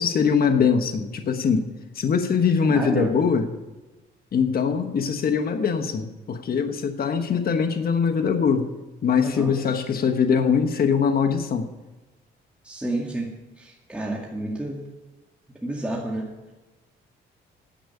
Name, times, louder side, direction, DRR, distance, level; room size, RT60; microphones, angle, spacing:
voice 1, 0.0-1.6 2.0-3.5 4.3-8.7 9.0-11.7, left 6 dB, 50° left, 5 dB, 1.2 m, -22 dB
voice 2, 2.7-3.2 9.2-9.5 12.6-13.3 13.6-14.8 15.6-16.3, right 1 dB, 5° right, -2 dB, 2.1 m, -29 dB
10.5 x 7.9 x 8.4 m, 1.1 s
cardioid pair, 90°, 20 cm